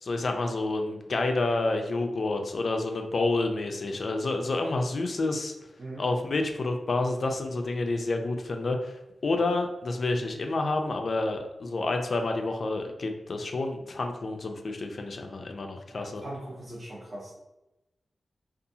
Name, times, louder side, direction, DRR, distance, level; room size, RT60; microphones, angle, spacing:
voice 1, 0.0-5.5 6.0-16.2, left 2 dB, 60° left, 4 dB, 0.3 m, -29 dB
voice 2, 15.9-17.3, right 1 dB, 45° right, -8 dB, 0.8 m, -40 dB
2.6 x 2.3 x 2.6 m, 0.96 s
wide cardioid pair, 80°, 0 cm